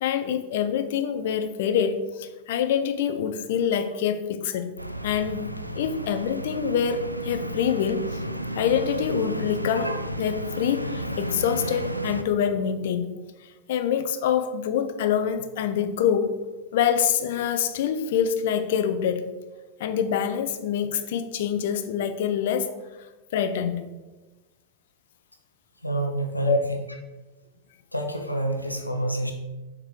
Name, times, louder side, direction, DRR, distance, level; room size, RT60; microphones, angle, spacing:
voice 1, 0.0-4.7 5.0-8.2 8.5-13.1 13.4-16.4 16.7-19.3 19.8-22.7 23.3-23.8 26.4-26.6, left 8 dB, 55° left, 10 dB, 0.6 m, -25 dB
sound 1, 4.8-12.2, right 1 dB, 90° right, 0.4 m, -33 dB
voice 2, 25.8-26.8 27.9-29.3, right 1 dB, 90° left, 3 dB, 0.8 m, -27 dB
7.2 x 3.7 x 4.7 m, 1.2 s
figure-of-eight pair, 90°, 0 cm